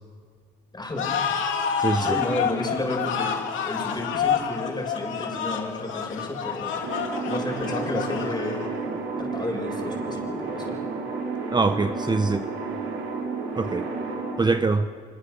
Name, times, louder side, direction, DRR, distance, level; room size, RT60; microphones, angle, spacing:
voice 1, 0.7-1.2 2.0-10.8, left 1 dB, 20° left, 1 dB, 6.7 m, -32 dB
sound 1, 1.0-8.8, left 7 dB, 80° left, 2.8 m, -28 dB
voice 2, 1.8-2.2 11.5-12.4 13.6-13.9 14.4-14.9, right 3 dB, 20° right, 9 dB, 0.8 m, -23 dB
sound 2, 6.8-14.4, right 4 dB, 85° right, 5.4 m, -31 dB
25.0 x 23.5 x 6.7 m, 2.1 s
cardioid pair, 90°, 20 cm